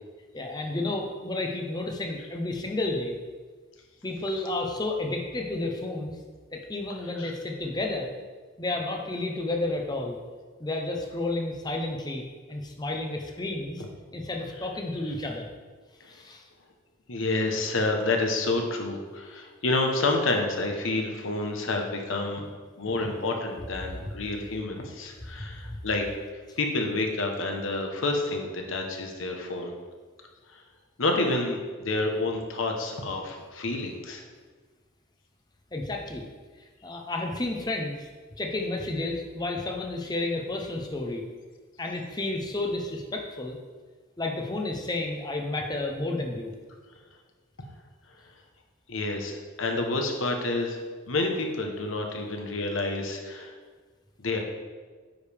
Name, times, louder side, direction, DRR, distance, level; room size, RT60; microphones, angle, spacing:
voice 1, 0.3-3.2 4.0-6.2 6.5-8.1 8.6-10.2 10.6-13.8 14.1-15.5 16.1-16.4 25.7-25.8 35.7-36.2 36.8-38.1 38.4-41.2 41.8-43.6 44.2-46.5, left 2 dB, 20° left, 2 dB, 0.8 m, -31 dB
voice 2, 17.1-22.4 22.8-26.0 26.6-29.7 31.0-34.2 48.9-50.8 51.1-53.5 54.2-54.4, left 2 dB, 75° left, 2 dB, 1.1 m, -29 dB
9.3 x 5.1 x 3.5 m, 1.4 s
head